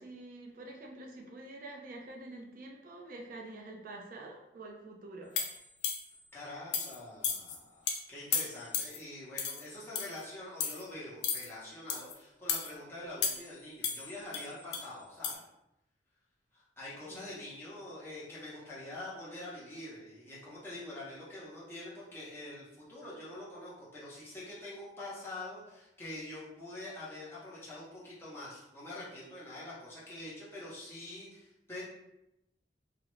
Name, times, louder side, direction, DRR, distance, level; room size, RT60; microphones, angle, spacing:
voice 1, 0.0-5.4 17.1-17.2, right 2 dB, 50° right, 1 dB, 0.4 m, -47 dB
sound 1, 5.4-6.2 6.7-7.0 7.2-7.6 7.9-8.0 8.3-9.0 9.4-9.6 10.0-10.2 10.6-10.8 11.2-11.5 11.9-12.1 12.5-12.7 13.2-13.6 13.8-14.9 15.2-15.4, left 6 dB, 80° left, 0.4 m, -34 dB
voice 2, 6.3-15.4 16.5-31.8, left 1 dB, 15° left, -8 dB, 0.8 m, -45 dB
2.4 x 2.0 x 3.1 m, 0.87 s
head